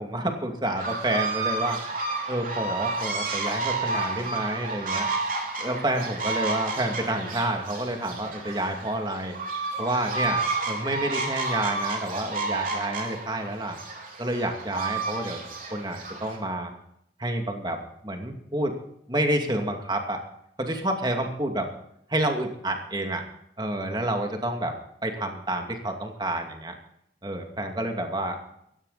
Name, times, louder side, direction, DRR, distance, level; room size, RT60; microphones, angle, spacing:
voice 1, 0.0-1.8 2.3-5.1 5.6-9.4 9.8-13.8 14.2-15.4 15.7-16.7 17.2-18.7 19.1-20.2 20.6-21.7 22.1-23.2 23.6-24.8 25.0-26.7 27.2-28.4, right 1 dB, 25° right, 3 dB, 2.5 m, -29 dB
sound 1, 0.8-16.4, right 3 dB, 50° right, 4.3 m, -31 dB
16.5 x 16.0 x 4.2 m, 0.74 s
head